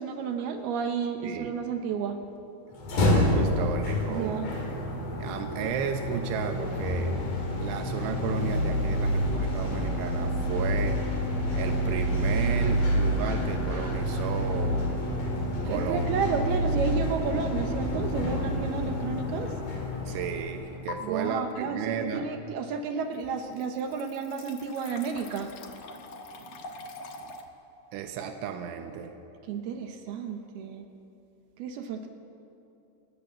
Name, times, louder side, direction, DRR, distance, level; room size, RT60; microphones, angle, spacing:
voice 1, 0.0-2.2 4.1-4.5 15.6-19.5 21.0-25.8 26.3-26.6 27.2-27.3 29.4-30.9 31.6-32.1, right 5 dB, 70° right, 6 dB, 2.7 m, -32 dB
voice 2, 1.2-1.6 3.0-4.4 5.2-7.1 7.6-11.0 11.5-14.9 15.7-16.1 20.1-22.3 27.9-29.1, right 7 dB, 90° right, 5 dB, 3.5 m, -34 dB
sound 1, 2.7-20.9, equal, 45° left, 5.2 m, -28 dB
sound 2, 18.1-18.4 18.9-19.0 20.9-21.0 22.7-22.8 23.1-27.4, left 4 dB, 60° left, 2.0 m, -44 dB
29.5 x 17.0 x 7.2 m, 2.8 s
omnidirectional pair, 5.3 m